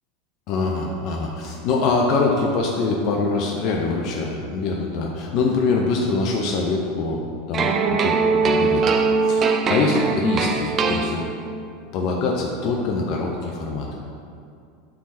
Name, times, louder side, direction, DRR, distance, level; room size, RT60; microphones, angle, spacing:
voice 1, 0.5-8.2 8.4-8.8 9.2-11.2 11.9-13.9, left 3 dB, 50° left, -1 dB, 0.8 m, -24 dB
sound 1, 7.5-11.6, right 4 dB, 35° right, 0.5 m, -21 dB
8.8 x 3.7 x 4.3 m, 2.4 s
hypercardioid pair, 85°, 0 cm